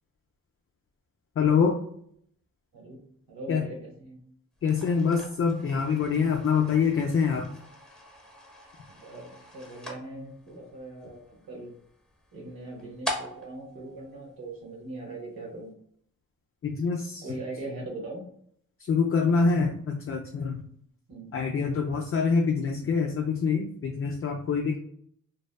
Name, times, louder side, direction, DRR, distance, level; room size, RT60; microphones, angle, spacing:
voice 1, 1.4-1.8 3.5-3.6 4.6-7.5 16.6-17.3 18.9-20.6 21.3-24.8, left 5 dB, 40° left, 2 dB, 0.4 m, -25 dB
voice 2, 3.3-4.2 8.9-11.7 12.3-15.7 17.2-18.2 21.1-21.3, right 2 dB, 85° right, -2 dB, 0.9 m, -40 dB
sound 1, 4.6-15.0, equal, ahead, 1.0 m, -43 dB
2.7 x 2.1 x 2.3 m, 0.65 s
cardioid pair, 50°, 35 cm